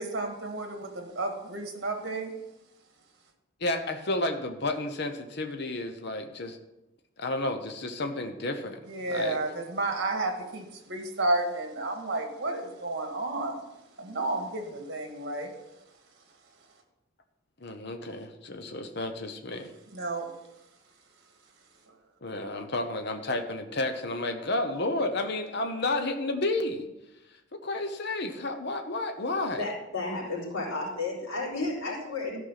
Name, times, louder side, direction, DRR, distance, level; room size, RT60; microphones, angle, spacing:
voice 1, 0.0-2.3 8.9-13.6 14.0-15.5 19.9-20.3, right 2 dB, 55° right, 3 dB, 1.9 m, -31 dB
voice 2, 3.6-6.6 7.2-9.4 17.6-19.7 22.2-26.9 27.5-29.6, left 2 dB, 55° left, 6 dB, 0.9 m, -31 dB
voice 3, 29.6-32.4, left 3 dB, 85° left, -5 dB, 4.2 m, -32 dB
13.0 x 5.5 x 5.7 m, 0.94 s
head